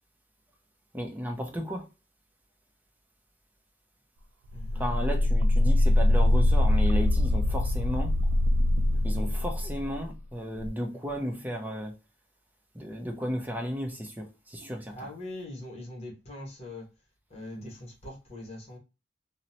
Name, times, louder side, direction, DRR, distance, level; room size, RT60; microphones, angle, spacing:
voice 1, 0.9-1.9 4.7-8.2 9.0-11.9 12.7-14.9, equal, 10° right, 0.5 m, -34 dB
voice 2, 4.5-5.0 8.9-9.4 10.9-11.4 14.9-16.8 17.3-18.8, left 1 dB, 35° left, 0.9 m, -42 dB
sound 1, 4.5-10.1 10.6-10.7, left 1 dB, 75° right, 0.3 m, -23 dB
2.8 x 2.0 x 2.6 m
head